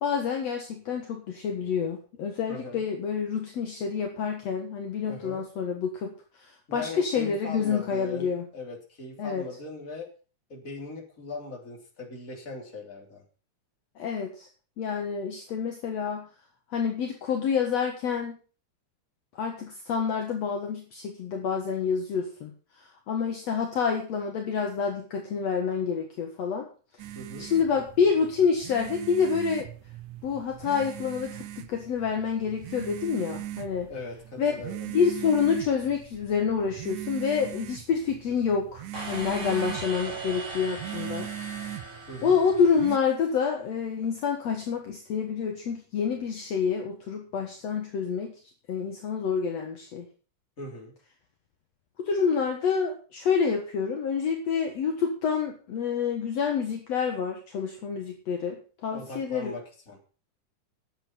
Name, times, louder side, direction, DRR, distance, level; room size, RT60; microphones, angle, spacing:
voice 1, 0.0-6.1 6.4-8.5 9.2-9.4 14.0-14.5 14.8-16.3 16.7-18.4 19.4-22.5 22.8-26.7 27.4-29.7 30.2-33.9 34.4-34.5 34.9-41.3 42.2-48.3 48.7-50.1 52.0-59.6, left 6 dB, 60° left, 3 dB, 2.5 m, -28 dB
voice 2, 2.5-2.8 5.1-5.4 6.7-10.1 10.5-13.2 27.2-27.5 33.9-34.9 42.1-42.4 50.6-50.9 58.9-60.0, left 2 dB, 25° left, 0 dB, 3.5 m, -39 dB
sound 1, 27.0-43.0, right 13 dB, 80° right, 2.1 m, -40 dB
sound 2, 38.9-43.1, right 2 dB, 35° right, 5.2 m, -39 dB
10.5 x 8.0 x 7.1 m, 0.38 s
omnidirectional pair, 3.5 m